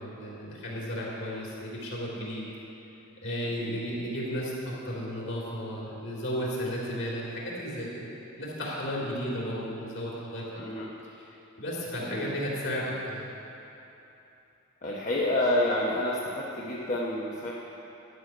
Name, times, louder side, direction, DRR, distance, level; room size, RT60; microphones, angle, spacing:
voice 1, 0.0-2.5 3.2-7.9 8.4-10.4 11.2-11.3 11.6-13.3, equal, 60° left, -5 dB, 3.5 m, -34 dB
voice 2, 10.6-10.9 12.0-12.3 14.8-17.6, left 1 dB, 35° left, -5 dB, 1.0 m, -29 dB
12.5 x 6.4 x 9.3 m, 2.9 s
head